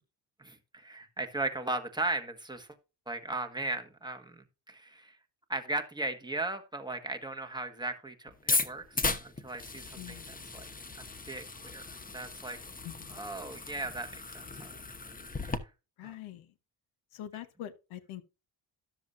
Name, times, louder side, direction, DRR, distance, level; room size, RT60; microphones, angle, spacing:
voice 1, 0.4-2.7 3.1-5.2 5.5-10.7 11.3-12.6 13.1-14.8 15.4-15.6 16.0-16.1, right 2 dB, 10° right, 1.5 m, -37 dB
sound 1, 8.4-15.6, left 3 dB, 20° left, 1.0 m, -36 dB
voice 2, 10.0-10.5 12.8-13.2 16.0-16.5 17.1-18.2, left 12 dB, 85° left, 1.1 m, -44 dB
12.5 x 7.1 x 2.6 m
cardioid pair, 85°, 46 cm